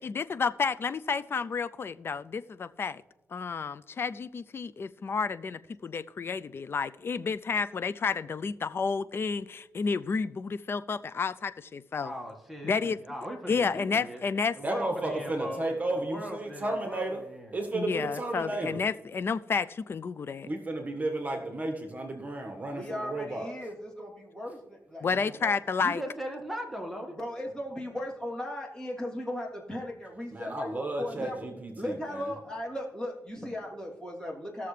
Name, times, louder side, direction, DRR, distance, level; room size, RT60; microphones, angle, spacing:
voice 1, 0.0-3.0 3.3-12.1 12.6-13.0 13.5-14.6 17.7-20.5 25.0-26.0, left 5 dB, 50° left, 14 dB, 0.4 m, -31 dB
voice 2, 12.0-14.2 14.6-15.6 15.9-17.6 25.0-25.4 25.8-27.2, equal, ahead, 1 dB, 1.7 m, -39 dB
voice 3, 14.6-17.2 17.5-18.8 20.4-23.5 30.3-32.2, right 2 dB, 30° right, 3 dB, 1.6 m, -33 dB
voice 4, 22.7-25.1 25.4-25.5 27.1-31.4 31.8-34.7, left 1 dB, 15° left, -4 dB, 3.1 m, -37 dB
18.5 x 6.8 x 3.3 m, 1.0 s
cardioid pair, 90°, 5 cm